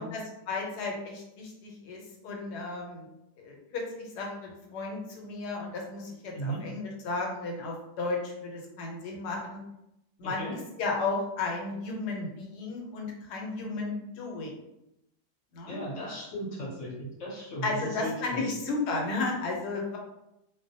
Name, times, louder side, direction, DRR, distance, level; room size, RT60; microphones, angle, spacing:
voice 1, 0.0-3.1 3.4-9.6 10.2-10.4 10.8-14.5 15.5-15.8 17.6-20.0, left 3 dB, 90° left, 0 dB, 1.2 m, -34 dB
voice 2, 10.2-10.5 15.7-18.4, right 1 dB, 55° left, -4 dB, 1.0 m, -36 dB
2.6 x 2.0 x 2.6 m, 0.88 s
omnidirectional pair, 1.7 m